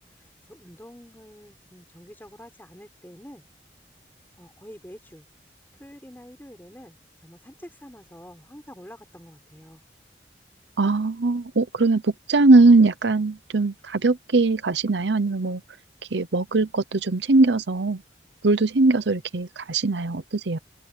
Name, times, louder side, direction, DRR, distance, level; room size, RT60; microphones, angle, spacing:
voice 1, 0.0-3.4 4.4-5.3 5.8-7.0 7.2-9.8, equal, 10° left, 4.2 m, -46 dB
voice 2, 10.8-15.6 16.1-18.0 18.4-20.6, right 3 dB, 80° right, 0.8 m, -20 dB
head